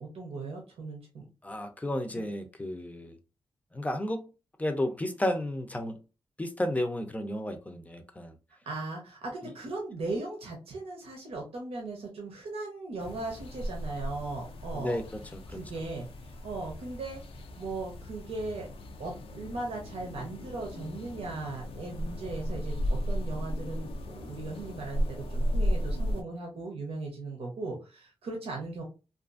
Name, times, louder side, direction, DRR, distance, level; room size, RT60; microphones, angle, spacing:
voice 1, 0.0-1.2 2.1-2.2 8.7-15.0 15.5-18.7 19.0-28.8, right 3 dB, 80° right, 0.8 m, -38 dB
voice 2, 1.4-3.2 3.7-4.3 4.6-6.0 6.4-8.3 9.4-9.5 14.7-15.1 15.3-15.6, left 1 dB, 15° left, 0.5 m, -32 dB
sound 1, 13.0-26.2, equal, 70° left, 0.4 m, -35 dB
2.6 x 2.4 x 2.4 m
cardioid pair, 85°, 10 cm